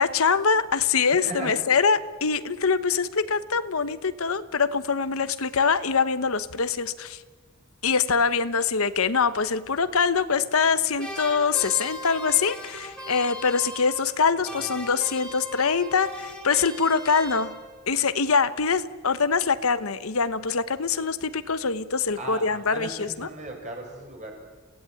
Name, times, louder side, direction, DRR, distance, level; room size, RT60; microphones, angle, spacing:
voice 1, 0.0-7.2 7.8-17.6 17.9-23.3, left 5 dB, 70° left, 13 dB, 1.0 m, -24 dB
sound 1, 11.0-14.2 14.5-17.9, left 1 dB, 5° left, 3.4 m, -38 dB
voice 2, 22.2-22.9 23.2-24.3, right 2 dB, 35° right, 1 dB, 6.5 m, -37 dB
29.0 x 17.0 x 9.1 m, 1.4 s
head